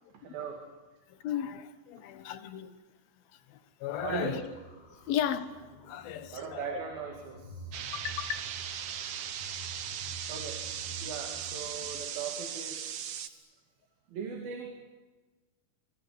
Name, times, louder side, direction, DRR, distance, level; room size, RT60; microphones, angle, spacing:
voice 1, 0.1-0.6 4.0-4.4 6.0-7.8 10.3-10.6 11.0-13.4 14.1-14.8, right 6 dB, 80° right, 3 dB, 4.3 m, -39 dB
voice 2, 1.1-2.8 3.5-4.4 5.1-6.8 7.9-8.5, left 10 dB, 90° left, 10 dB, 3.2 m, -35 dB
sound 1, 4.0-12.0, right 1 dB, 35° left, 4.9 m, -49 dB
sound 2, 7.7-13.3, right 9 dB, 60° right, 1.8 m, -38 dB
25.0 x 24.5 x 9.4 m, 1.3 s
omnidirectional pair, 4.1 m